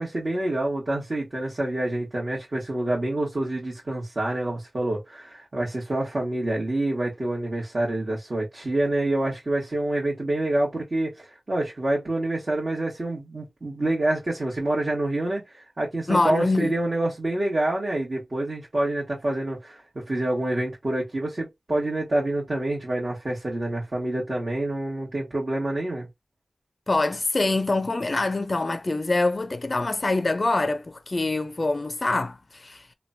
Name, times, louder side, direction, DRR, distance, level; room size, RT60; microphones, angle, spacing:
voice 1, 0.0-26.1, right 1 dB, 45° right, 1.2 m, -27 dB
voice 2, 16.1-16.7 26.9-32.8, left 2 dB, 45° left, 0.4 m, -25 dB
3.0 x 2.2 x 2.6 m
wide cardioid pair, 65°, 0 cm